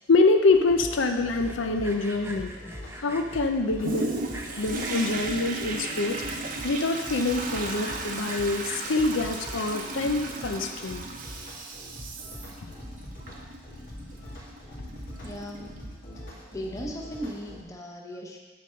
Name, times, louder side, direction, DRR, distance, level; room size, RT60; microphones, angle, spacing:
voice 1, 0.1-2.5 2.9-4.1 4.6-6.2 6.6-11.1, left 3 dB, 85° left, 6 dB, 0.6 m, -25 dB
sound 1, 0.5-17.6, equal, 50° left, 2.2 m, -43 dB
Sawing, 1.3-3.4 4.0-5.2 5.6-6.2 6.7-6.8 7.0-7.1 7.4-9.9, right 1 dB, 15° right, 0.6 m, -43 dB
Toilet flush, 3.8-16.2 16.8-16.9, right 2 dB, 45° right, 0.8 m, -36 dB
voice 2, 15.2-15.8 16.2-18.4, equal, 15° left, 0 dB, 0.9 m, -38 dB
9.3 x 5.3 x 5.7 m, 1.3 s
head